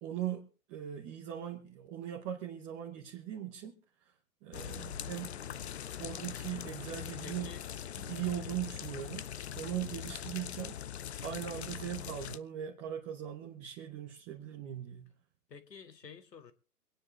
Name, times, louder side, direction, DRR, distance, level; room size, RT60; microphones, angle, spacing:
voice 1, 0.0-4.1 4.4-5.3 6.0-7.5 8.0-9.3 9.6-10.8 11.2-15.1, right 11 dB, 10° right, 0.8 m, -40 dB
sound 1, 4.5-12.4, left 9 dB, 45° left, 0.6 m, -42 dB
voice 2, 7.2-7.6 8.2-8.4 15.5-16.5, left 6 dB, 90° left, 2.0 m, -50 dB
25.0 x 9.6 x 3.2 m
hypercardioid pair, 155°, 48 cm